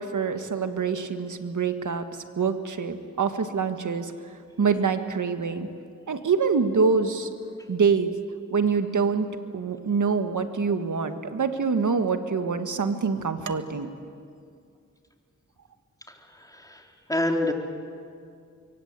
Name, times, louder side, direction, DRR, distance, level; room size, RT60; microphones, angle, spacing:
voice 1, 0.0-4.1 4.6-5.7 6.1-7.3 7.7-8.2 8.5-9.3 9.5-13.9, right 5 dB, 80° right, 8 dB, 1.6 m, -25 dB
voice 2, 16.1-17.5, left 1 dB, 10° left, 2 dB, 3.8 m, -28 dB
26.0 x 23.5 x 8.2 m, 2.3 s
cardioid pair, 50°, 30 cm